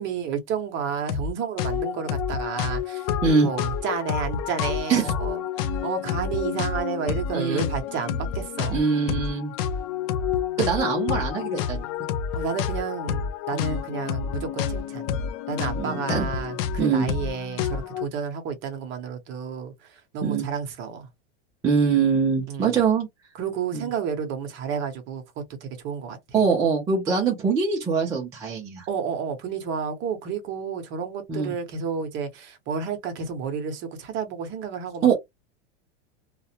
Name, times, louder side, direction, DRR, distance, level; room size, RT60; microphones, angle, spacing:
voice 1, 0.0-3.1 3.4-8.9 12.3-15.1 15.5-21.1 22.5-22.8 23.4-26.4 28.9-35.1, right 6 dB, 35° right, 0.7 m, -31 dB
sound 1, 1.1-1.3 1.6-18.1, left 7 dB, 55° left, 0.5 m, -29 dB
voice 2, 7.3-7.7 8.7-9.5 10.6-11.9 13.5-13.8 15.8-16.3 16.8-17.1 20.2-20.4 21.6-23.1 23.7-23.9 26.3-28.9 31.3-31.5 35.0-35.1, right 5 dB, 10° right, 0.3 m, -23 dB
2.4 x 2.0 x 2.7 m
supercardioid pair, 150°, 35 cm